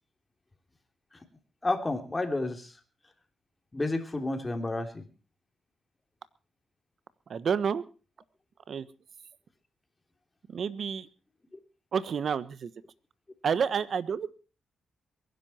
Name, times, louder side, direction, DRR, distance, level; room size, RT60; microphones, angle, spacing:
voice 1, 1.6-2.7 3.7-5.0, left 2 dB, 20° left, 5 dB, 3.2 m, -30 dB
voice 2, 7.3-7.8 8.7-8.8 10.5-11.1 11.9-12.7 13.4-14.3, right 7 dB, 60° right, 15 dB, 1.3 m, -29 dB
23.0 x 10.5 x 4.4 m, 0.35 s
cardioid pair, 75°, 0 cm